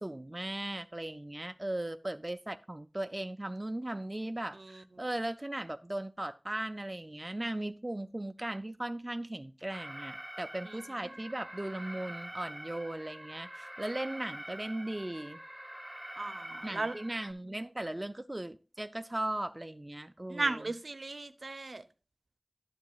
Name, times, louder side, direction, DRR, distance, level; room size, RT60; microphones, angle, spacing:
voice 1, 0.0-15.4 16.6-20.7, right 1 dB, 25° right, 0.3 m, -38 dB
Alarm, 9.7-17.3, right 1 dB, 5° right, 1.1 m, -46 dB
voice 2, 16.2-16.9 20.3-21.8, right 2 dB, 65° right, 0.6 m, -35 dB
11.5 x 7.4 x 2.3 m
wide cardioid pair, 65°, 0 cm